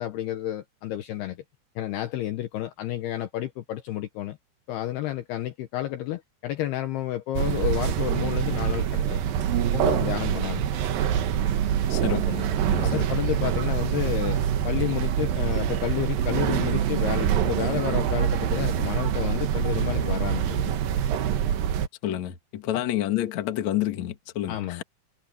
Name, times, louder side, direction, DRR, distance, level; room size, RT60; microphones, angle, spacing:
voice 1, 0.0-1.4 1.8-4.4 4.7-9.2 9.6-10.6 12.1-12.2 12.8-20.7 22.7-22.8 24.5-24.8, left 13 dB, 75° left, 2.6 m, -30 dB
sound 1, 7.3-21.9, right 9 dB, 65° right, 2.5 m, -25 dB
voice 2, 11.9-13.1 22.0-24.8, left 12 dB, 55° left, 2.2 m, -29 dB
omnidirectional pair, 5.4 m